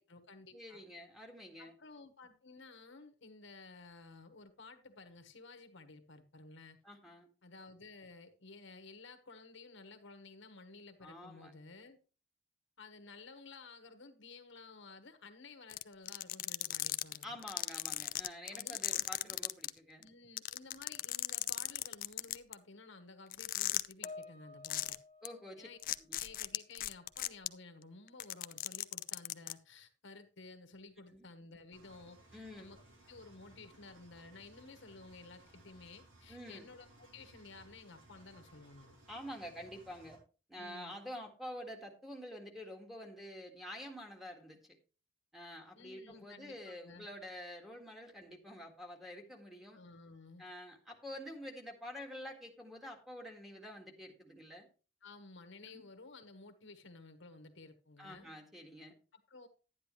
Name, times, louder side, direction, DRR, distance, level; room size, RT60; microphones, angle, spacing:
voice 1, 0.0-0.8 1.6-6.8 7.4-12.0 12.8-17.4 18.5-19.4 20.0-25.0 25.6-25.8 26.2-32.8 33.1-39.0 40.6-40.9 45.7-47.1 49.7-50.4 55.0-58.3 59.1-59.5, left 3 dB, 70° left, 1.3 m, -54 dB
voice 2, 0.5-1.7 6.8-7.3 11.0-11.5 17.2-20.0 25.2-25.7 26.1-26.2 31.1-31.3 32.3-32.7 36.3-36.7 39.1-40.2 40.5-44.8 45.3-49.8 50.4-54.7 55.7-55.8 58.0-59.0, left 1 dB, ahead, 1.8 m, -48 dB
sound 1, 15.7-19.7 20.0-20.1 20.4-22.5 23.3-24.0 24.6-24.9 25.2-25.3 25.8-27.5 28.1-29.5, left 14 dB, 45° left, 0.4 m, -36 dB
Piano, 24.0-26.7 26.9-27.3 28.0-28.2, left 3 dB, 30° left, 1.3 m, -53 dB
Engine, 31.7-40.2, right 2 dB, 80° right, 3.7 m, -61 dB
10.5 x 10.0 x 3.1 m
head